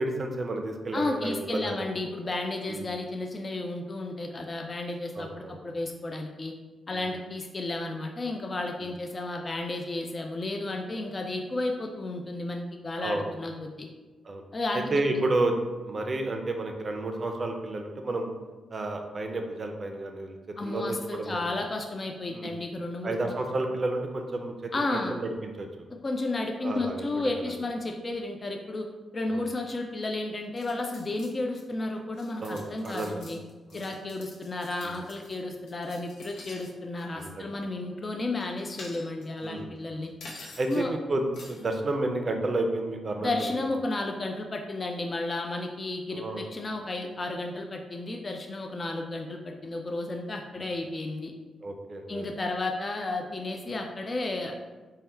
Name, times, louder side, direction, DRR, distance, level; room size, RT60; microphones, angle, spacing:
voice 1, 0.0-2.0 2.7-2.9 5.2-5.5 6.9-7.1 8.8-8.9 13.0-13.3 14.2-14.4 14.7-15.6 15.8-18.3 18.7-21.5 22.3-22.6 23.0-25.9 26.6-27.6 29.3-29.4 32.4-33.3 33.7-33.9 34.8-35.0 37.1-37.5 39.4-40.1 40.6-43.7 46.1-46.4 51.6-52.3, right 2 dB, 35° right, 4 dB, 0.5 m, -31 dB
voice 2, 0.9-6.5 6.9-13.9 14.5-14.9 20.6-23.3 24.7-25.2 26.0-28.9 29.1-33.4 33.7-40.1 40.7-40.9 43.2-51.3 52.1-54.5, left 2 dB, 30° left, 2 dB, 0.3 m, -32 dB
sound 1, 30.6-31.6 31.9-36.7 37.0-37.3 38.4-39.4 40.2-40.8 41.3-41.7, left 2 dB, 90° left, 0.7 m, -47 dB
3.4 x 2.2 x 4.3 m, 1.3 s
cardioid pair, 100°, 0 cm